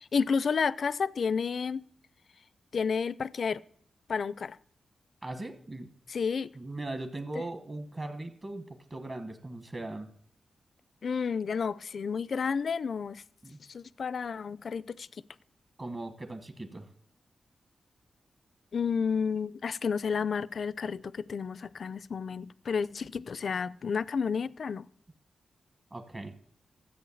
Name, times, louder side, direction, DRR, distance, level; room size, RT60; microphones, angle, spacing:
voice 1, 0.1-1.9 2.7-3.6 4.1-4.6 6.1-6.5 11.0-13.2 13.7-15.1 18.7-24.9, left 6 dB, 60° left, 0.4 m, -31 dB
voice 2, 5.2-5.9 6.5-10.1 13.4-13.6 15.8-16.9 25.9-26.3, right 2 dB, 30° right, 1.2 m, -39 dB
13.5 x 8.1 x 7.0 m
wide cardioid pair, 115°, 0 cm